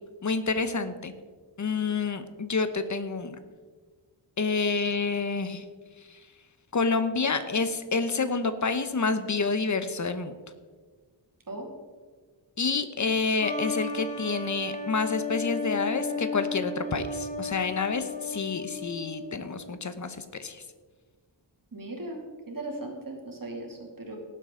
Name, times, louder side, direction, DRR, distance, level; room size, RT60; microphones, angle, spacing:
voice 1, 0.2-1.1 1.6-3.4 4.4-5.6 6.1-6.2 6.7-10.3 12.6-20.6, left 4 dB, 40° left, 11 dB, 0.9 m, -28 dB
sound 1, 13.4-19.7, left 4 dB, 15° left, 1.5 m, -34 dB
voice 2, 21.7-24.2, right 2 dB, 45° right, 0 dB, 2.5 m, -38 dB
18.0 x 7.8 x 3.8 m, 1.5 s
wide cardioid pair, 100°, 46 cm